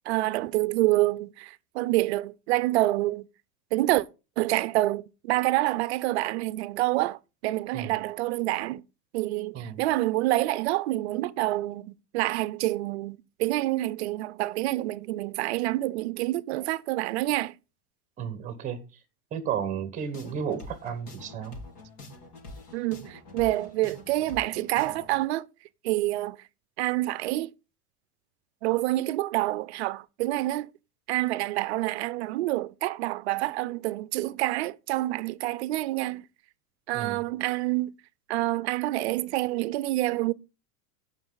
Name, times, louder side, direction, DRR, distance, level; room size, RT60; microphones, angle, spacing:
voice 1, 0.1-3.3 3.7-4.1 4.4-8.8 9.1-17.5 22.7-25.5 25.8-26.4 26.8-27.5 28.6-30.7 31.1-36.2 36.9-37.9 38.3-40.3, right 17 dB, 45° right, 0.5 m, -27 dB
voice 2, 18.2-18.8 19.3-21.6 36.9-37.2, right 8 dB, 15° right, 1.1 m, -33 dB
sound 1, 20.0-25.2, left 2 dB, 80° left, 4.2 m, -45 dB
17.0 x 6.0 x 3.9 m
supercardioid pair, 175°, 45 cm